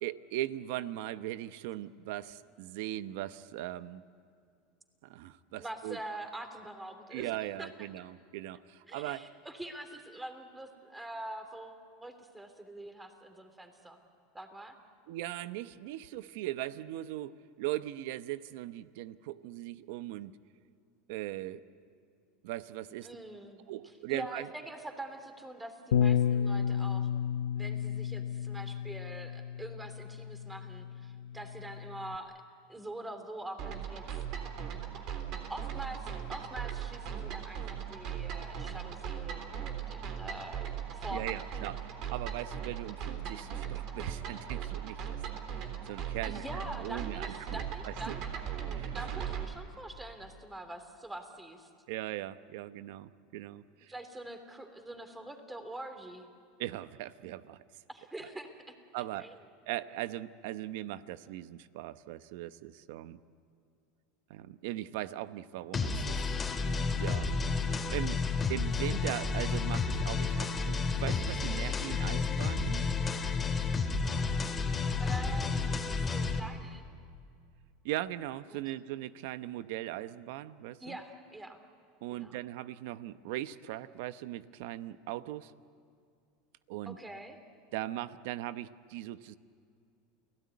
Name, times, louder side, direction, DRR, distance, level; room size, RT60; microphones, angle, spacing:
voice 1, 0.0-4.0 5.0-6.0 7.1-9.3 15.1-20.3 21.1-21.6 22.4-23.1 23.7-24.5 41.1-46.4 46.8-48.1 48.7-48.9 51.9-53.9 56.6-57.6 58.9-59.4 59.7-63.2 64.3-66.3 67.0-67.3 67.6-72.9 77.8-81.0 82.0-85.5 86.7-87.0 87.7-89.4, right 14 dB, 70° right, 14 dB, 0.9 m, -39 dB
voice 2, 5.6-7.7 8.9-14.0 14.3-14.7 23.0-23.6 24.1-27.1 27.5-32.4 32.7-34.0 35.5-41.5 46.2-48.2 48.9-51.7 53.9-56.3 57.9-58.7 59.2-59.4 75.0-76.8 78.5-78.6 80.8-81.6 82.1-82.3 86.9-87.4, right 1 dB, 10° right, 7 dB, 3.1 m, -44 dB
Bass guitar, 25.9-32.2, left 8 dB, 90° left, 0.6 m, -32 dB
sound 1, 33.6-49.4, right 8 dB, 55° right, 3.6 m, -38 dB
sound 2, 65.7-76.4, left 4 dB, 25° left, 2.7 m, -31 dB
29.5 x 17.5 x 9.6 m, 2.3 s
supercardioid pair, 110°, 0 cm